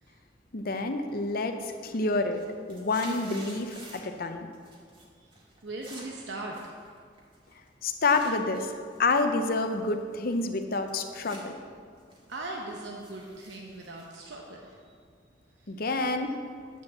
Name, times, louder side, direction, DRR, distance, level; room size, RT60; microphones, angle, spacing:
voice 1, 0.5-2.4 2.7-4.5 7.8-8.7 9.0-11.6 15.7-16.4, left 3 dB, 55° left, 6 dB, 0.7 m, -28 dB
sound 1, 0.8-1.2 1.5-4.2 4.5-5.1 5.3-8.3 8.9-11.4 11.8-15.0, right 2 dB, 30° right, 1.9 m, -50 dB
voice 2, 5.0-6.8 12.3-15.0 15.5-15.8, right 2 dB, 75° right, 0 dB, 0.9 m, -40 dB
9.1 x 5.3 x 7.2 m, 2.1 s
head